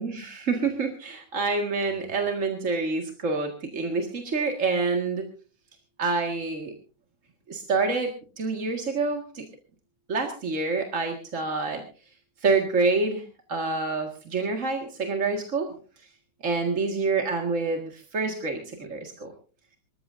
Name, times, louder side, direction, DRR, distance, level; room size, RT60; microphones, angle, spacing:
voice 1, 0.0-5.3 6.0-6.7 7.5-9.5 10.1-11.8 12.4-13.2 13.5-15.7 16.4-19.3, right 3 dB, 30° right, 2 dB, 1.6 m, -27 dB
26.5 x 14.5 x 2.6 m, 0.37 s
omnidirectional pair, 3.5 m